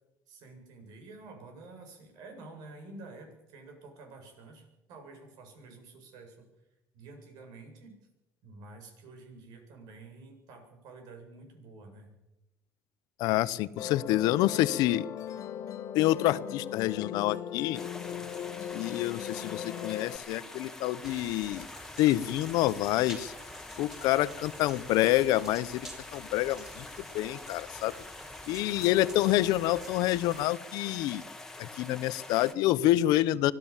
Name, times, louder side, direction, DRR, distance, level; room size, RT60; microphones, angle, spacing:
voice 1, 0.3-6.4 6.9-7.9 8.4-12.1, right 3 dB, 70° right, 4 dB, 8.0 m, -49 dB
voice 2, 13.2-15.1 15.9-17.8 18.7-21.7 22.0-23.3 23.8-25.9 26.1-26.8 27.1-27.9 28.5-31.2 31.6-33.5, left 15 dB, 70° left, 16 dB, 0.9 m, -27 dB
Musical instrument, 13.8-20.2, left 9 dB, 50° left, 1.6 m, -39 dB
sound 1, 17.7-32.5, left 2 dB, 5° left, 2.0 m, -46 dB
sound 2, 21.0-30.5, right 1 dB, 10° right, 5.2 m, -49 dB
25.0 x 16.0 x 7.4 m, 0.93 s
cardioid pair, 140°, 7 cm